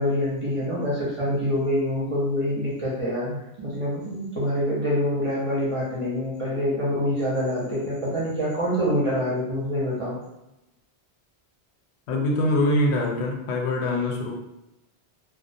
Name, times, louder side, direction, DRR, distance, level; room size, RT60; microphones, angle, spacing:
voice 1, 0.0-10.2, equal, 40° right, -7 dB, 0.5 m, -26 dB
voice 2, 12.1-14.3, left 1 dB, 85° left, 0 dB, 0.9 m, -23 dB
2.3 x 2.1 x 2.5 m, 0.92 s
omnidirectional pair, 1.1 m